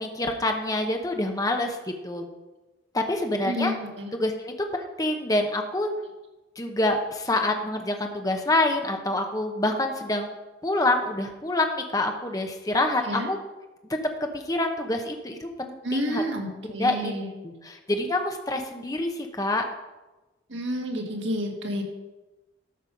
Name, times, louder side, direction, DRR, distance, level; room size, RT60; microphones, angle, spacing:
voice 1, 0.0-2.3 2.9-3.7 4.1-5.9 6.6-10.3 10.6-13.4 13.9-14.0 14.3-16.2 16.6-17.1 17.4-19.6, left 2 dB, 20° left, 4 dB, 0.9 m, -27 dB
voice 2, 3.4-4.1 13.0-13.3 15.8-17.3 20.5-21.8, equal, 85° right, 1 dB, 1.8 m, -30 dB
13.0 x 5.5 x 5.3 m, 1.1 s
head